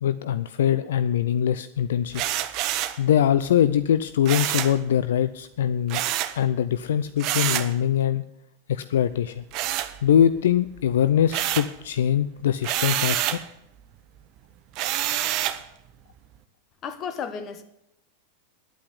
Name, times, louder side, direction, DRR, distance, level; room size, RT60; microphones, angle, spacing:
voice 1, 0.0-2.2 3.0-6.0 6.3-8.2 8.7-9.4 10.0-13.4, left 9 dB, 65° left, 0.5 m, -22 dB
sound 1, 2.1-3.0 4.3-4.8 5.9-6.4 7.2-7.7 9.5-10.4 10.8-11.8 12.6-13.5 14.8-15.6, right 13 dB, 45° right, 0.9 m, -27 dB
voice 2, 16.8-17.6, left 6 dB, 30° left, 1.4 m, -33 dB
10.0 x 8.6 x 9.8 m
figure-of-eight pair, 90°, 0 cm